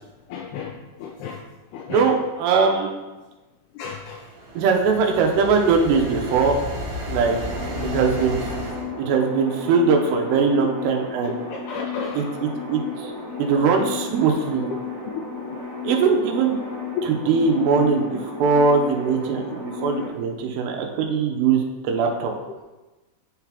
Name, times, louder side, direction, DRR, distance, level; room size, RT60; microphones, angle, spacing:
voice 1, 0.3-1.4 1.7-2.1 3.8-4.3 5.6-5.7 11.5-12.4, left 5 dB, 80° left, 0 dB, 2.4 m, -33 dB
voice 2, 1.9-2.9 4.6-6.6 7.1-7.4 7.9-8.4 9.0-11.4 12.1-13.1 13.4-14.7 15.8-16.6 17.0-18.1 18.4-22.3, right 5 dB, 85° right, 2 dB, 2.9 m, -21 dB
sound 1, 4.2-8.9, equal, 65° right, 3.1 m, -32 dB
sound 2, 7.4-20.1, left 4 dB, 30° right, 0.5 m, -33 dB
10.5 x 4.0 x 2.9 m, 1.1 s
omnidirectional pair, 4.9 m